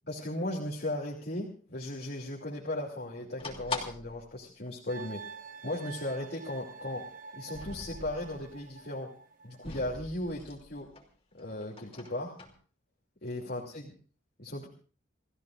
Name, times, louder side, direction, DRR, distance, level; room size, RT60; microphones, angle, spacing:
voice 1, 0.1-5.2 5.6-7.0 7.3-9.1 9.4-10.9 11.4-12.3 13.2-13.9 14.4-14.7, left 1 dB, 55° left, -3 dB, 2.8 m, -36 dB
sound 1, 3.4-4.2 4.7-4.8 5.0-5.1 5.9-6.0 7.4-8.5 9.6-11.1 11.4-12.5, left 3 dB, 30° left, 2.8 m, -42 dB
sound 2, 4.9-10.3, right 5 dB, 45° right, 1.6 m, -48 dB
28.5 x 16.0 x 2.5 m, 0.40 s
head